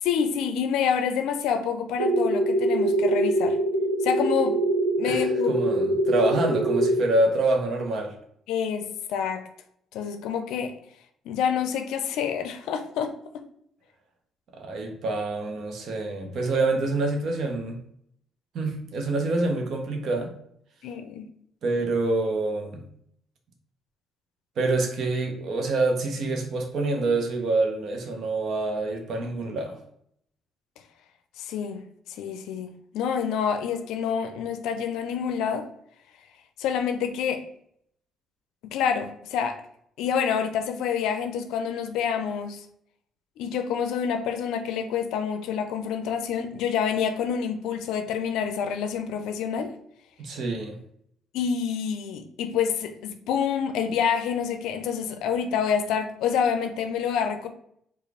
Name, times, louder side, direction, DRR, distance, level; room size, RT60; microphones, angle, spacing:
voice 1, 0.0-3.6 4.0-4.6 5.0-5.5 8.5-9.5 9.9-10.7 11.3-13.1 20.8-21.3 31.4-35.7 36.6-37.4 38.6-39.6 40.0-42.7 43.4-49.7 51.3-57.5, left 7 dB, 75° left, 0.4 m, -27 dB
sound 1, 2.0-7.0, right 1 dB, 90° right, 0.6 m, -24 dB
voice 2, 5.0-8.1 14.5-17.8 18.5-20.4 21.6-22.9 24.6-29.8 50.2-50.8, right 2 dB, 65° right, 0.9 m, -26 dB
4.7 x 2.4 x 3.3 m
hypercardioid pair, 50°, 0 cm